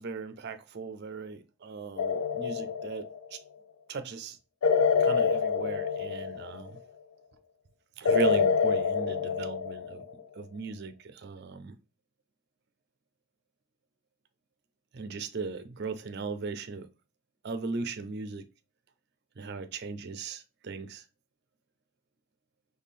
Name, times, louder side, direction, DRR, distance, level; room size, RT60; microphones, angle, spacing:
voice 1, 0.0-3.4 3.9-4.4 5.0-6.8 8.0-10.0 10.3-11.7 14.9-16.9 17.4-18.4 19.4-21.0, right 4 dB, 50° right, 0.5 m, -37 dB
sound 1, 2.0-3.3 4.6-6.8 8.1-10.2, left 5 dB, 75° left, 0.5 m, -27 dB
3.7 x 3.3 x 4.1 m
head